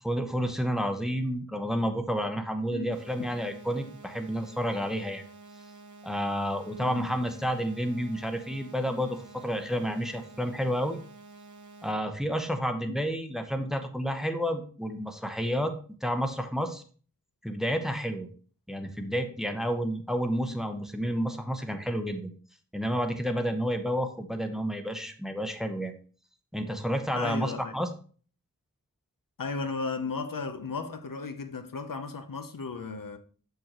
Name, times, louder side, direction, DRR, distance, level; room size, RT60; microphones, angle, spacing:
voice 1, 0.0-5.2 6.0-11.0 11.8-15.7 16.0-16.8 17.4-18.3 18.7-22.3 22.7-25.9 26.5-27.9, equal, ahead, 0.9 m, -30 dB
voice 2, 2.7-3.3 6.8-7.1 12.9-13.0 27.1-27.7 29.4-33.2, left 4 dB, 75° left, 0.8 m, -35 dB
sound 1, 2.9-11.9, right 3 dB, 65° right, 0.9 m, -50 dB
6.6 x 6.4 x 2.9 m
wide cardioid pair, 60°, 33 cm